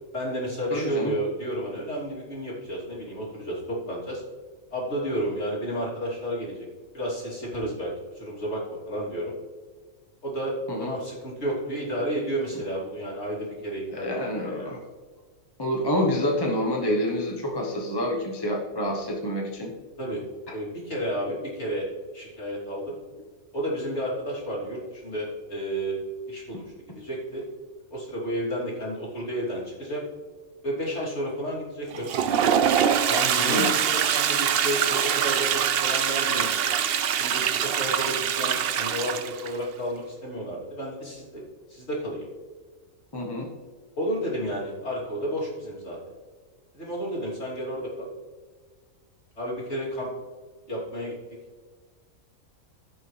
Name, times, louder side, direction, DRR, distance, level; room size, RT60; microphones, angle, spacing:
voice 1, 0.1-4.2 4.7-6.7 6.9-9.3 10.2-14.7 20.0-20.2 20.5-21.8 22.1-23.0 23.5-26.0 26.3-27.4 27.9-30.0 30.6-32.7 33.1-36.7 37.1-41.4 41.7-42.3 44.0-46.0 46.7-48.1 49.4-50.1 50.7-51.1, equal, 50° left, -6 dB, 3.3 m, -31 dB
voice 2, 0.7-1.1 10.7-10.9 13.9-14.8 15.6-19.7 20.5-20.6 33.5-33.7 43.1-43.5, left 1 dB, 20° left, 0 dB, 0.9 m, -27 dB
Toilet flush, 31.9-39.6, right 8 dB, 60° right, 0.6 m, -24 dB
15.5 x 6.2 x 3.3 m, 1.5 s
omnidirectional pair, 1.5 m